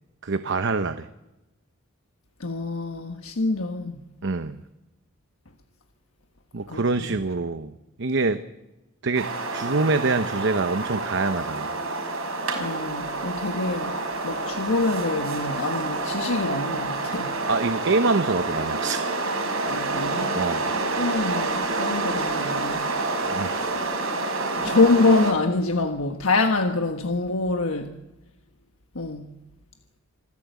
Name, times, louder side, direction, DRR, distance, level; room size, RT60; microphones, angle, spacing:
voice 1, 0.2-1.1 4.2-4.6 6.5-7.7 8.0-8.4 9.0-11.7 17.5-19.1 20.3-20.7 23.3-23.7, right 3 dB, 60° right, 0.9 m, -25 dB
voice 2, 2.4-4.1 6.7-7.1 12.5-13.9 14.2-17.3 19.7-20.4 20.7-22.9 24.5-27.9 28.9-29.3, left 3 dB, 85° left, 1.4 m, -25 dB
sound 1, 9.1-25.3, right 3 dB, 85° right, 5.1 m, -28 dB
26.0 x 14.5 x 8.3 m
head